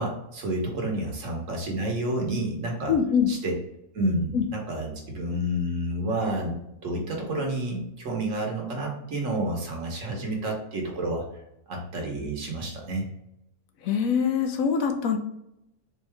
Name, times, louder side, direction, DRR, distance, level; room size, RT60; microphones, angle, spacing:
voice 1, 0.0-3.0 3.3-3.5 3.9-11.2 11.7-13.1, right 1 dB, 60° right, 0 dB, 1.4 m, -29 dB
voice 2, 2.9-3.3 4.3-4.4 13.8-15.2, left 7 dB, 75° left, 5 dB, 1.0 m, -23 dB
4.5 x 2.7 x 3.3 m, 0.81 s
omnidirectional pair, 1.5 m